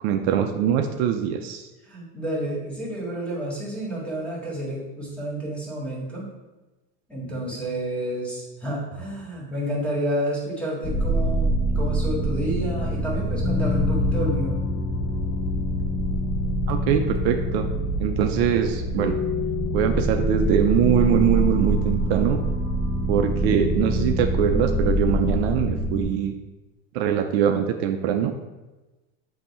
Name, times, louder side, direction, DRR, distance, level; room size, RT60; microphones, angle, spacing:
voice 1, 0.0-1.7 7.2-7.3 16.7-17.7 18.0-19.2 19.7-22.4 23.1-26.3 26.9-28.3, right 9 dB, 65° right, 5 dB, 0.6 m, -23 dB
voice 2, 1.9-6.3 7.1-14.6, right 1 dB, 5° left, -5 dB, 1.9 m, -30 dB
sound 1, 10.8-26.0, equal, 30° left, 0.8 m, -25 dB
8.1 x 2.8 x 4.3 m, 1.1 s
supercardioid pair, 135°, 35 cm